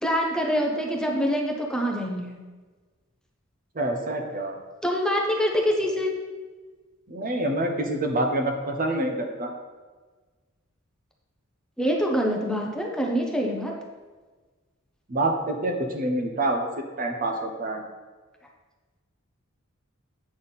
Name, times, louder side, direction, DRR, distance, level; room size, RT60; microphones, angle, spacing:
voice 1, 0.0-2.3 4.8-6.1 11.8-13.7, equal, 5° left, 0 dB, 0.8 m, -25 dB
voice 2, 3.7-4.6 7.1-9.5 15.1-16.7 17.0-17.8, right 1 dB, 45° right, 4 dB, 0.9 m, -26 dB
8.6 x 5.7 x 4.1 m, 1.3 s
head